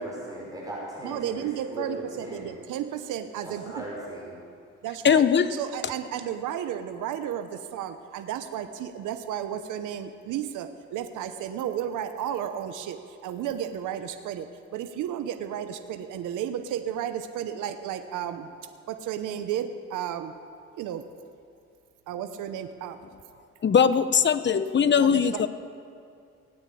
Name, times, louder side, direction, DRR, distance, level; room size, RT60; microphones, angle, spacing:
voice 1, 0.0-2.5 3.4-4.3, right 1 dB, 10° right, -5 dB, 5.5 m, -38 dB
voice 2, 1.0-3.9 4.8-18.5 18.9-20.3 20.8-21.0 22.1-23.0 25.0-25.5, right 10 dB, 85° right, 8 dB, 0.9 m, -33 dB
voice 3, 5.0-5.5 23.6-25.5, left 7 dB, 35° left, 12 dB, 0.9 m, -20 dB
18.0 x 9.4 x 8.4 m, 2.4 s
cardioid pair, 90°, 30 cm